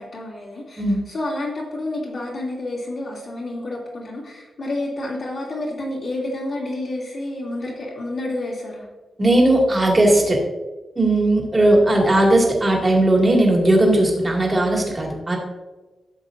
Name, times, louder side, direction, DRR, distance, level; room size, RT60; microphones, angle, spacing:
voice 1, 0.0-8.9, left 1 dB, 55° left, -7 dB, 2.8 m, -29 dB
voice 2, 9.2-10.4 11.0-15.4, right 1 dB, 20° right, -1 dB, 2.2 m, -17 dB
12.5 x 7.5 x 2.6 m, 1.2 s
wide cardioid pair, 135°, 0 cm